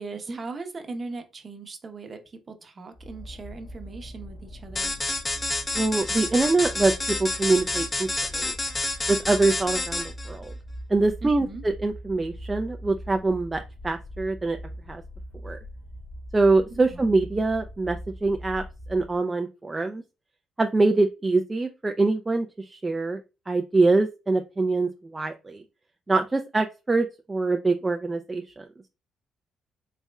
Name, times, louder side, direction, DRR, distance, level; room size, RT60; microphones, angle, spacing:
voice 1, 0.0-4.9 11.2-11.6 16.7-17.0, right 3 dB, 35° right, 0.8 m, -39 dB
sound 1, 2.9-19.2, equal, 65° left, 1.9 m, -41 dB
sound 2, 4.8-10.3, left 2 dB, 25° left, 0.6 m, -29 dB
voice 2, 5.8-6.9 7.2-8.6 9.1-10.5 10.9-14.6 14.9-15.0 15.4-15.6 16.3-18.6 18.9-20.0 20.6-23.2 23.5-25.6 26.1-28.7, right 3 dB, 20° right, 0.4 m, -24 dB
4.2 x 3.4 x 2.2 m
cardioid pair, 90°, 0 cm